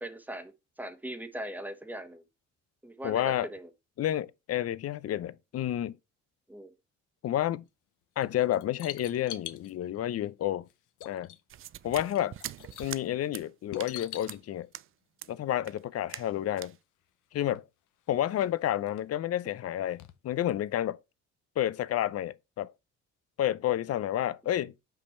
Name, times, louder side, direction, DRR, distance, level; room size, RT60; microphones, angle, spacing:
voice 1, 0.0-2.2 2.8-3.7 6.5-6.7, right 1 dB, 5° right, 1.2 m, -40 dB
voice 2, 3.0-3.5 4.0-6.0 7.2-7.6 8.2-10.7 11.0-11.3 11.8-12.3 12.8-14.7 15.3-16.7 17.3-17.6 18.1-21.0 21.6-22.7 23.4-24.9, left 12 dB, 55° left, 0.6 m, -30 dB
sound 1, 8.2-9.7 10.7-10.8 11.0-11.6 11.9-13.0 13.7-14.4 16.4-16.5 16.7-16.8 17.5-17.6 18.1-19.0 20.0-20.1 20.5-20.6, left 12 dB, 85° left, 0.8 m, -43 dB
sound 2, 11.5-13.0 13.3-13.5 13.8-13.9 14.3-14.4 14.7-14.9 15.2-15.3 15.6-15.8 16.1-16.3 16.6-16.7, right 12 dB, 45° right, 0.4 m, -42 dB
5.7 x 5.2 x 4.3 m
cardioid pair, 90°, 30 cm